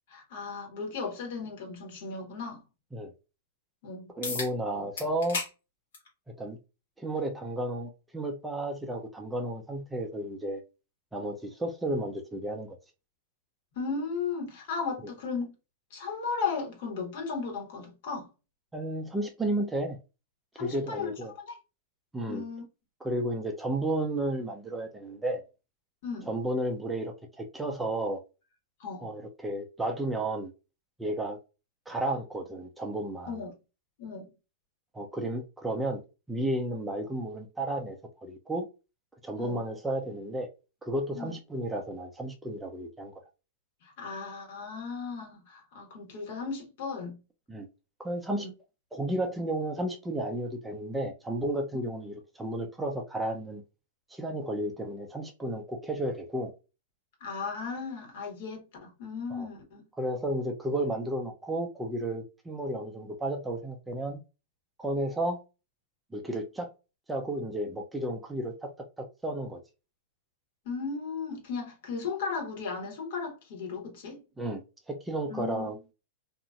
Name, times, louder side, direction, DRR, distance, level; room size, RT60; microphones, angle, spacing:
voice 1, 0.1-2.6 3.8-4.1 4.7-4.9 13.7-15.5 15.9-18.3 20.5-21.1 21.4-21.6 22.3-22.6 26.0-26.3 28.8-29.1 33.3-33.6 34.0-34.3 39.4-39.6 41.1-41.3 43.8-47.2 48.4-48.5 57.2-59.9 70.6-74.2 75.3-75.7, left 5 dB, 60° left, 1.5 m, -36 dB
sound 1, 4.2-4.5 5.0-5.5 5.9-6.1 7.2-7.3 12.2-12.3, left 4 dB, 75° left, 1.5 m, -34 dB
voice 2, 4.2-5.4 6.4-6.6 7.0-10.6 11.1-12.8 18.7-20.0 20.6-21.3 22.1-22.4 23.0-25.4 26.3-28.2 29.0-30.5 31.0-31.4 31.9-33.3 34.9-36.0 36.3-38.7 39.2-40.5 40.8-43.1 47.5-47.7 48.0-48.5 48.9-53.6 54.1-56.5 59.3-59.5 60.0-64.2 64.8-65.4 66.1-66.7 67.1-68.7 69.0-69.6 74.4-74.6 74.9-75.8, right 1 dB, 10° right, 0.5 m, -32 dB
2.9 x 2.6 x 2.4 m
hypercardioid pair, 115°, 0 cm